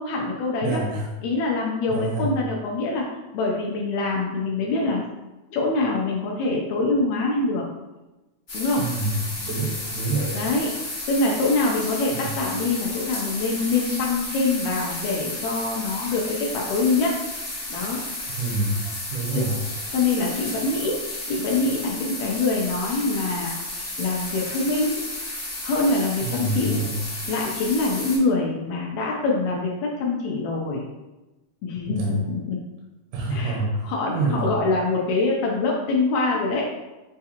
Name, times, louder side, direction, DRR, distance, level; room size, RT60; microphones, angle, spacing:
voice 1, 0.0-0.8 1.2-3.0 3.3-5.0 5.5-7.6 8.5-8.9 10.3-10.7 11.1-17.2 17.7-18.0 19.3-19.4 19.9-25.0 25.6-26.8 27.3-30.8 31.6-32.6 33.3-36.7, left 3 dB, 85° left, -2 dB, 1.6 m, -24 dB
voice 2, 0.6-1.1 1.9-2.3 8.8-10.4 12.1-12.3 18.3-18.8 19.1-19.6 26.2-26.9 31.9-32.2 33.1-33.7 34.1-34.5, right 2 dB, 75° right, -2 dB, 2.0 m, -27 dB
sound 1, 8.5-28.2, left 1 dB, 70° left, 0.6 m, -33 dB
7.0 x 2.4 x 2.8 m, 1.1 s
omnidirectional pair, 3.9 m